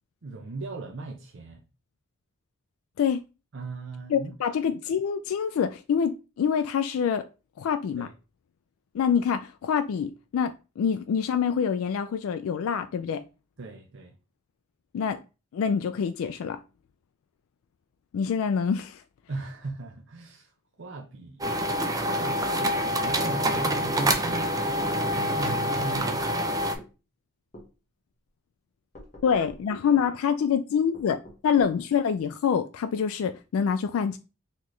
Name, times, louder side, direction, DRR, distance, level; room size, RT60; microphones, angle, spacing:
voice 1, 0.2-1.6 3.5-4.6 8.0-8.1 13.6-14.1 19.3-20.5 20.8-21.7 22.1-24.5 24.9-26.7, right 3 dB, 60° right, 0.6 m, -38 dB
voice 2, 4.1-7.3 7.6-8.1 8.9-13.2 14.9-15.2 15.5-16.6 18.1-19.0 29.2-34.2, left 7 dB, 75° left, 0.3 m, -26 dB
samsung laser printer rhythm, 21.4-26.8, equal, 15° right, 0.5 m, -26 dB
sound 1, 24.0-25.0 26.0-26.2 26.8-26.9 27.5-27.7 28.9-29.7 30.9-31.8, equal, 35° left, 1.2 m, -46 dB
4.0 x 3.1 x 3.1 m
head